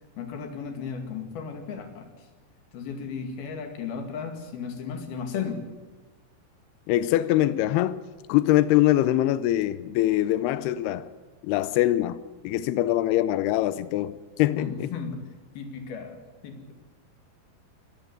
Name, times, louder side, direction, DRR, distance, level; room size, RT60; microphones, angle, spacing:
voice 1, 0.2-2.1 2.7-5.6 14.6-15.3 15.6-16.7, left 6 dB, 55° left, 3.7 m, -35 dB
voice 2, 6.9-8.0 8.3-11.1 11.4-14.9, left 14 dB, 90° left, 2.2 m, -23 dB
24.0 x 14.5 x 8.2 m
omnidirectional pair, 5.5 m